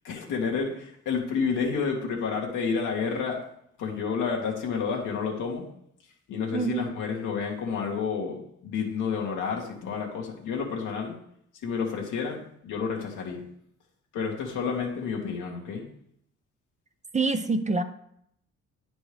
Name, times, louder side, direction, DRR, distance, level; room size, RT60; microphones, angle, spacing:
voice 1, 0.0-3.4 3.8-5.7 6.3-11.2 11.6-13.4 14.1-15.9, left 5 dB, 85° left, -1 dB, 1.9 m, -30 dB
voice 2, 6.5-6.9 17.1-17.8, right 3 dB, 25° right, 9 dB, 0.6 m, -26 dB
9.6 x 5.1 x 3.4 m, 0.71 s
cardioid pair, 90°, 30 cm